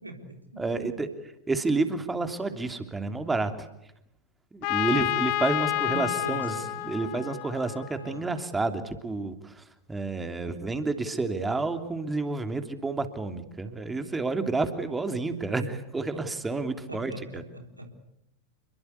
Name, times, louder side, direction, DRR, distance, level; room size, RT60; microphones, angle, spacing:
voice 1, 0.0-0.9 5.8-6.6 8.0-8.2 16.9-17.9, right 2 dB, 85° right, 5 dB, 3.9 m, -40 dB
voice 2, 0.6-1.1 1.5-3.7 4.5-17.4, right 3 dB, 10° right, 8 dB, 3.0 m, -30 dB
Trumpet, 4.6-8.4, left 16 dB, 45° left, 1.6 m, -30 dB
29.5 x 22.5 x 8.3 m, 0.81 s
figure-of-eight pair, 90°, 0 cm